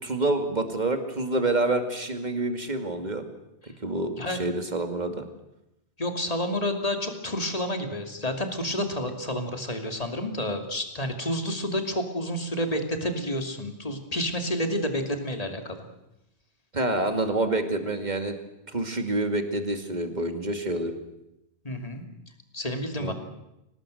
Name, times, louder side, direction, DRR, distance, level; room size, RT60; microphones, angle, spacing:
voice 1, 0.0-3.3 3.8-5.3 16.7-18.3 18.7-20.9 23.0-23.1, right 2 dB, 40° right, 7 dB, 2.4 m, -27 dB
voice 2, 4.2-4.5 6.0-15.8 21.6-22.0 22.5-23.1, left 1 dB, 35° left, 5 dB, 2.8 m, -29 dB
24.5 x 18.5 x 7.8 m, 0.89 s
omnidirectional pair, 1.1 m